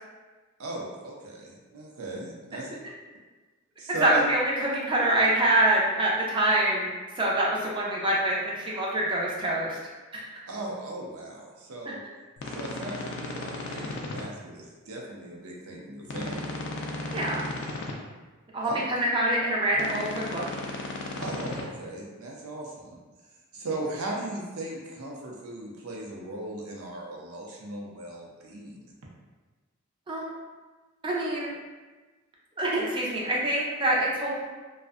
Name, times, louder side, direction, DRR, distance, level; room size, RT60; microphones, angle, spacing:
voice 1, 0.6-2.7 3.8-4.2 10.5-12.0 12.4-16.4 18.6-18.8 21.2-22.9 23.5-28.9, right 1 dB, 75° right, -2 dB, 0.5 m, -38 dB
voice 2, 3.9-6.9 7.2-9.8 10.1-10.4 17.1-17.5 18.5-20.5 30.1-30.3 31.0-31.5 32.6-34.5, right 1 dB, 20° right, -4 dB, 0.4 m, -25 dB
sound 1, 12.4-14.2 16.0-17.9 19.7-21.6, left 2 dB, 55° left, 0.3 m, -35 dB
2.5 x 2.1 x 2.3 m, 1.3 s
head